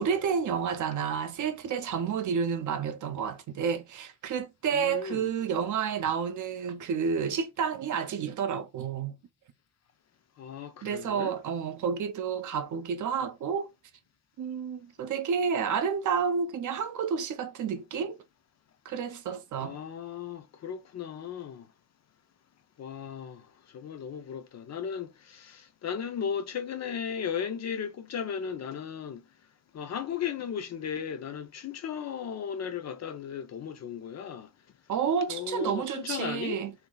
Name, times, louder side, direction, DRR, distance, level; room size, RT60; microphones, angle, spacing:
voice 1, 0.0-9.2 10.8-13.7 14.4-18.2 18.9-19.8 34.9-36.7, right 6 dB, 55° right, 0.6 m, -30 dB
voice 2, 4.7-5.3 10.4-11.3 19.6-21.7 22.8-29.2 29.7-34.5 35.3-36.6, left 7 dB, 45° left, 0.5 m, -36 dB
2.8 x 2.3 x 3.8 m
cardioid pair, 145°, 37 cm